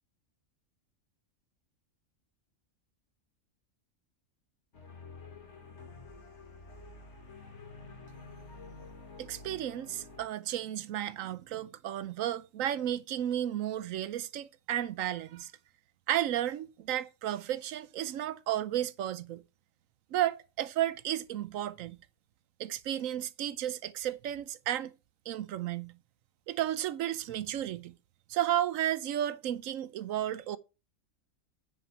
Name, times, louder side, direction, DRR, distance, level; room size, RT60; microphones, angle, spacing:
sound 1, 4.7-10.3, left 3 dB, 55° left, 2.0 m, -49 dB
voice 1, 9.2-15.5 16.1-19.4 20.1-22.0 22.6-24.9 25.3-25.9 26.5-28.0 28.3-30.6, right 12 dB, 75° right, 1.0 m, -33 dB
9.6 x 4.5 x 5.8 m
omnidirectional pair, 1.5 m